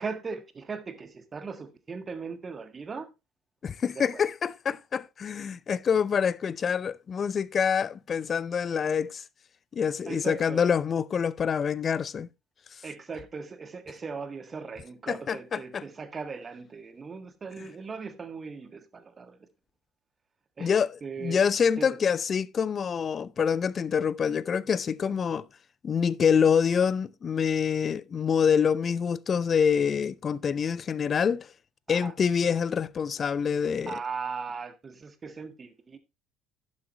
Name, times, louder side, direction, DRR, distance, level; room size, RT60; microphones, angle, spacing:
voice 1, 0.0-3.1 3.9-4.2 10.1-10.7 12.8-19.4 20.6-20.7 21.0-21.4 21.8-21.9 25.0-25.1 31.9-32.1 33.9-36.0, right 5 dB, 35° right, 1.5 m, -38 dB
voice 2, 3.6-9.2 9.7-12.3 15.1-15.8 20.6-25.5 25.8-31.5 31.9-34.0, left 7 dB, 40° left, 0.5 m, -26 dB
11.5 x 7.5 x 3.1 m
hypercardioid pair, 60°, 0 cm